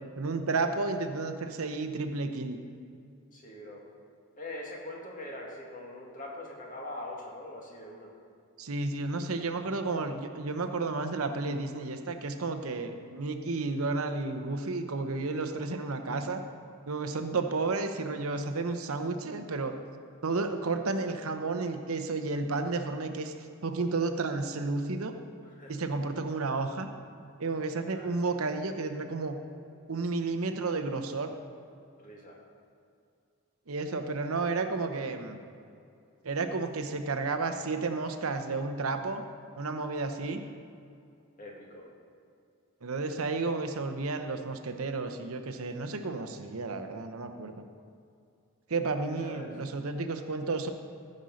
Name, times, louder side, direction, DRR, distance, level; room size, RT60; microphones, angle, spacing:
voice 1, 0.2-2.6 8.6-16.4 16.9-19.7 20.2-23.3 23.6-25.1 25.7-26.9 27.4-29.4 29.9-31.3 33.7-35.4 36.2-39.2 39.6-40.4 42.8-47.6 48.7-50.7, right 3 dB, 85° right, 6 dB, 0.8 m, -32 dB
voice 2, 3.3-3.8 4.4-8.1 25.5-25.7 27.8-28.2 32.0-32.4 41.4-41.9 49.2-49.5, left 1 dB, 40° left, -2 dB, 1.9 m, -43 dB
14.5 x 5.5 x 6.4 m, 2.4 s
head